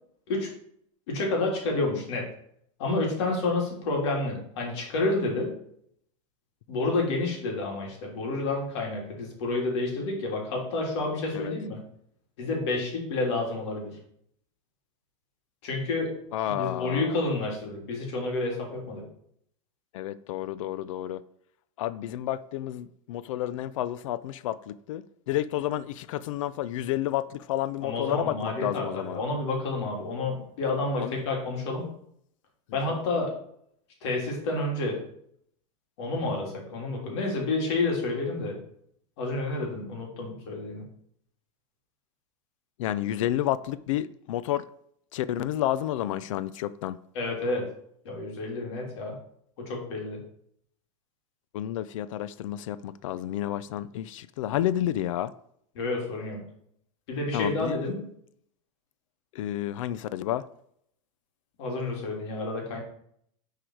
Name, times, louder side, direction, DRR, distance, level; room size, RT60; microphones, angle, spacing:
voice 1, 1.1-2.3 2.8-5.6 6.7-11.8 12.4-14.0 15.6-16.1 16.5-19.0 27.8-31.9 32.7-33.3 34.0-35.0 36.0-38.6 39.2-40.8 47.1-47.7 48.0-49.2 49.6-50.2 55.7-56.4 57.1-58.0 61.6-62.8, left 2 dB, 60° left, 3.1 m, -29 dB
voice 2, 16.3-17.1 19.9-21.2 21.8-29.2 31.0-31.2 32.9-33.0 42.8-44.6 45.1-47.0 51.5-55.3 57.3-57.9 59.3-60.4, left 12 dB, 80° left, 0.5 m, -30 dB
10.0 x 4.9 x 4.6 m
supercardioid pair, 180°, 16 cm